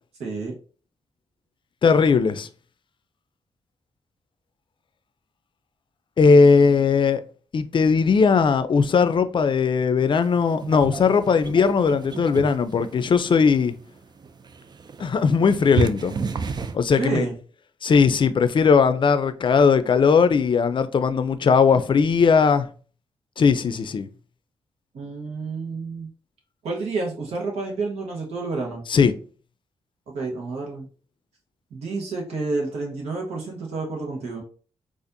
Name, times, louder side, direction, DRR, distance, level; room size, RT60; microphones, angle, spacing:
voice 1, 0.2-0.5 16.9-17.3 24.9-26.1 26.6-28.8 30.1-30.9 31.7-34.4, right 3 dB, 80° right, 1.1 m, -29 dB
voice 2, 1.8-2.5 6.2-7.2 7.5-13.7 15.0-16.1 16.7-17.2 17.8-22.7 23.4-24.1 28.9-29.1, left 5 dB, 50° left, 0.5 m, -18 dB
sound 1, 10.2-16.8, right 5 dB, 40° right, 0.4 m, -32 dB
4.2 x 2.5 x 2.6 m
supercardioid pair, 50°, 11 cm